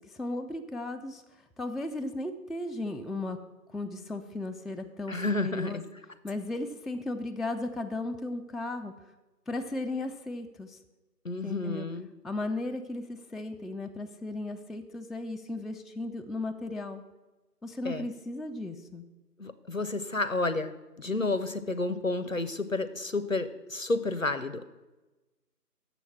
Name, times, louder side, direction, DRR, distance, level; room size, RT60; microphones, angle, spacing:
voice 1, 0.1-1.2 1.6-3.4 3.7-5.8 6.2-8.9 9.5-10.8 11.4-11.9 12.2-17.0 17.6-19.0, left 2 dB, ahead, 9 dB, 0.4 m, -35 dB
voice 2, 5.1-5.8 11.2-12.1 17.8-18.1 19.4-24.7, left 2 dB, 55° left, 13 dB, 0.5 m, -31 dB
7.0 x 6.0 x 7.0 m, 1.1 s
figure-of-eight pair, 170°, 49 cm